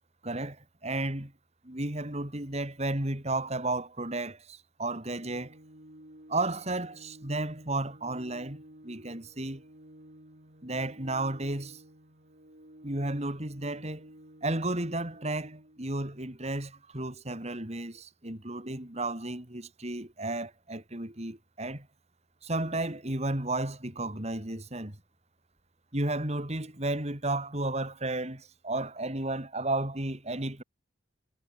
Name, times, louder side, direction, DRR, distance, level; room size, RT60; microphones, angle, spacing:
voice 1, 0.2-1.3 1.6-5.5 6.3-9.6 10.6-11.8 12.8-14.1 14.4-21.9 22.4-25.0 25.9-30.6, right 2 dB, 35° right, 3.5 m, -33 dB
Organ, 5.0-16.0, right 1 dB, 50° right, 4.8 m, -54 dB
head